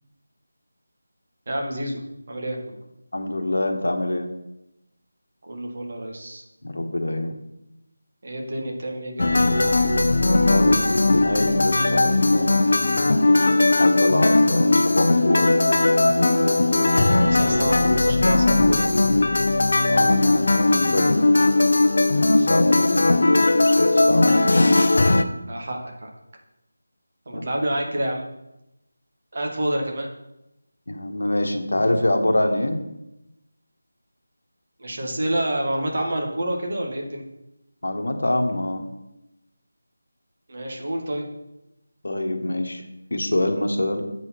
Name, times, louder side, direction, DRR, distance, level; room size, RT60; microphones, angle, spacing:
voice 1, 1.5-2.0 2.3-2.7 5.4-6.4 8.2-9.3 17.1-18.9 25.5-26.1 27.2-28.2 29.3-30.1 34.8-37.2 40.5-41.2, right 1 dB, 40° right, 0 dB, 1.6 m, -28 dB
voice 2, 3.1-4.3 6.6-7.4 10.3-12.6 13.8-15.5 19.9-21.2 22.1-24.3 27.3-27.4 30.9-32.8 37.8-38.9 42.0-42.8 43.1-44.0, left 1 dB, 80° left, 4 dB, 1.4 m, -25 dB
sound 1, 9.2-25.2, left 2 dB, 50° left, 0.6 m, -18 dB
7.9 x 4.8 x 5.7 m, 0.90 s
figure-of-eight pair, 175°, 0 cm